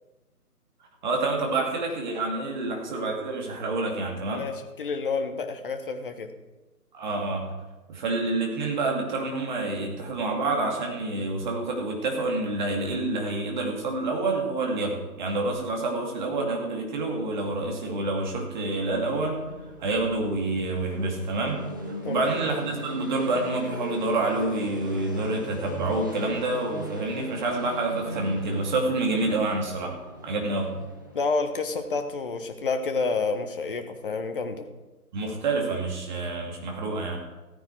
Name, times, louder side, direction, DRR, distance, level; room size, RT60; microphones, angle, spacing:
voice 1, 1.0-4.5 6.9-7.5 7.9-19.4 19.8-21.6 22.1-29.9 30.2-30.7 35.1-37.2, right 2 dB, 30° right, 1 dB, 2.3 m, -28 dB
voice 2, 4.3-6.3 22.0-22.4 31.1-34.7, left 4 dB, 35° left, 7 dB, 1.1 m, -29 dB
sound 1, 18.8-32.7, equal, 15° right, 0.6 m, -40 dB
15.0 x 9.4 x 4.7 m, 1.1 s
figure-of-eight pair, 150°, 46 cm